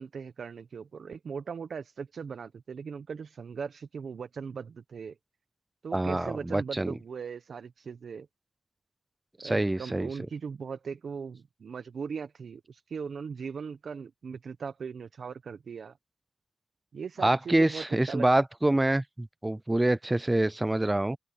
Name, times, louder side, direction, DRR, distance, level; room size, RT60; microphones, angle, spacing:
voice 1, 0.0-5.2 5.8-8.3 9.4-15.9 16.9-18.3, right 6 dB, 65° right, 1.0 m, -39 dB
voice 2, 5.9-7.0 9.4-10.1 17.2-21.2, right 1 dB, 15° right, 0.5 m, -26 dB
open air
cardioid pair, 85°, 0 cm